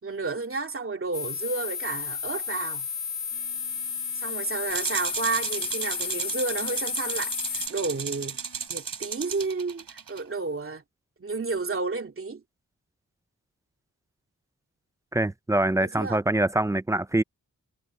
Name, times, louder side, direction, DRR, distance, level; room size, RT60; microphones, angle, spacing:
voice 1, 0.0-2.9 4.1-8.4 8.7-10.8 11.2-12.4 15.8-16.2, right 3 dB, 40° right, 2.7 m, -31 dB
sound 1, 1.1-7.7, left 6 dB, 80° left, 4.7 m, -32 dB
sound 2, 3.3-8.7, left 1 dB, 40° left, 4.4 m, -54 dB
sound 3, 4.7-10.2, right 6 dB, 85° right, 3.2 m, -34 dB
voice 2, 15.1-17.2, right 1 dB, 10° right, 0.4 m, -24 dB
wide cardioid pair, 155°, 33 cm